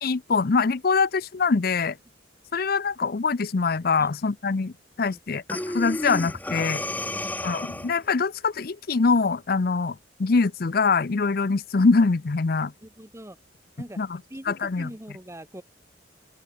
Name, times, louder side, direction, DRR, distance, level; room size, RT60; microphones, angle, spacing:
voice 1, 0.0-2.0 2.5-6.8 7.4-12.7 14.0-14.1 14.5-14.9, left 4 dB, 55° left, 0.6 m, -24 dB
Breathing, 5.5-8.1, left 1 dB, 10° left, 1.2 m, -31 dB
voice 2, 12.8-13.4 13.8-14.0 14.3-15.6, equal, 15° right, 2.8 m, -43 dB
open air
head